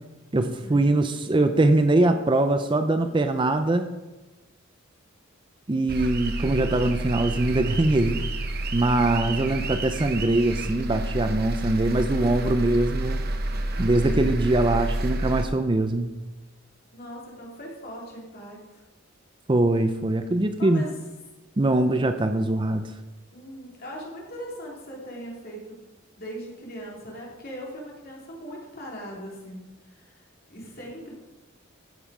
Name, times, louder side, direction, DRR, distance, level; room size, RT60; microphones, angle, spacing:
voice 1, 0.3-4.0 5.7-8.2 8.7-13.2 13.8-16.1 19.5-20.8 21.6-22.9, right 2 dB, 25° right, 8 dB, 0.5 m, -22 dB
sound 1, 5.9-15.4, right 1 dB, 45° right, 0.9 m, -29 dB
voice 2, 16.9-18.8 20.6-20.9 23.3-25.8 26.2-30.2 30.5-31.1, equal, 45° left, -3 dB, 3.0 m, -40 dB
15.5 x 5.6 x 4.8 m, 1.1 s
head